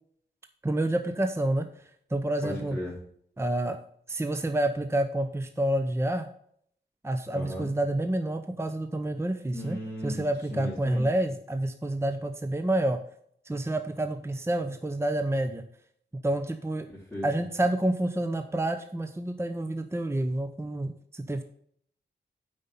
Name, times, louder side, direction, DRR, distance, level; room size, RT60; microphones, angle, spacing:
voice 1, 0.6-1.7 2.1-2.8 3.4-3.8 4.1-6.3 7.0-13.0 13.5-15.6 16.2-16.9 17.2-21.4, right 1 dB, 15° right, 8 dB, 0.7 m, -28 dB
voice 2, 2.4-3.0 7.3-7.7 9.5-10.2 10.5-11.1 16.9-17.3, equal, 5° left, -9 dB, 3.9 m, -36 dB
8.0 x 5.4 x 5.5 m, 0.66 s
wide cardioid pair, 70°, 18 cm